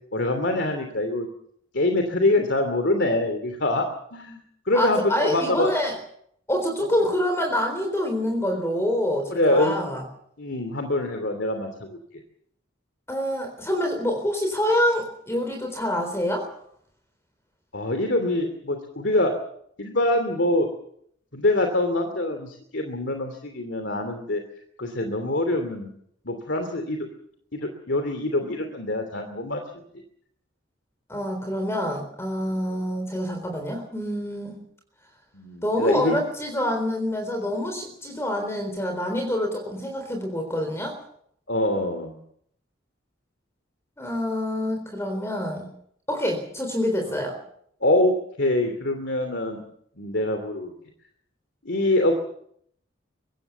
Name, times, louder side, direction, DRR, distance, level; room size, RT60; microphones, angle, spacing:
voice 1, 0.1-1.3 1.7-4.4 4.7-5.7 7.0-7.1 9.3-9.8 10.4-12.0 17.7-19.3 19.8-20.7 21.3-24.4 24.8-25.9 26.2-27.1 27.5-29.6 31.1-31.2 32.7-32.8 35.3-36.2 41.5-42.2 47.1-47.2 47.8-49.6 50.0-50.7 51.6-52.1, left 1 dB, 65° left, 5 dB, 2.9 m, -24 dB
voice 2, 4.7-5.9 6.5-10.0 13.1-16.5 31.1-34.6 35.6-41.0 44.0-45.7 46.1-47.4, left 1 dB, 15° left, 4 dB, 3.9 m, -26 dB
24.0 x 18.0 x 6.9 m, 0.69 s
head